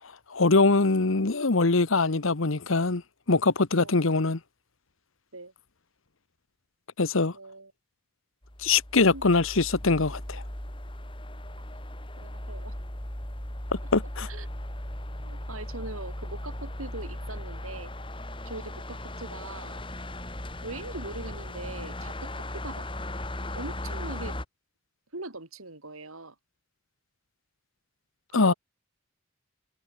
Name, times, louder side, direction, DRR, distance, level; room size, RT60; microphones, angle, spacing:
voice 1, 0.3-3.0 3.3-4.4 7.0-7.3 8.6-10.4 13.9-14.3 28.3-28.5, left 3 dB, 75° left, 1.2 m, -23 dB
voice 2, 7.3-7.7 9.0-9.2 11.6-11.7 12.2-12.7 14.3-14.5 15.2-17.9 18.4-19.8 20.6-22.9 23.6-24.4 25.1-26.4 28.3-28.5, right 2 dB, 90° right, 4.6 m, -41 dB
sound 1, 8.4-24.5, left 1 dB, 25° left, 3.5 m, -37 dB
head